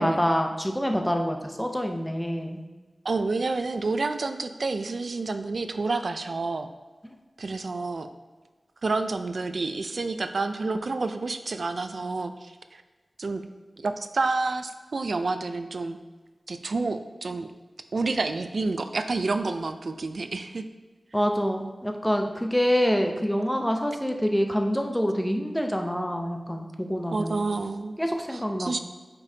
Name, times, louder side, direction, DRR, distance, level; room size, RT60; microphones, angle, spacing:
voice 1, 0.0-2.6 21.1-27.4 28.0-28.8, equal, 5° left, 3 dB, 0.7 m, -26 dB
voice 2, 3.0-6.7 7.4-8.1 8.8-12.8 13.2-13.4 13.8-16.0 16.5-17.5 17.9-20.6 27.1-28.0 28.3-28.8, right 3 dB, 65° right, 8 dB, 0.4 m, -29 dB
8.3 x 5.3 x 2.8 m, 1.3 s
wide cardioid pair, 90°, 0 cm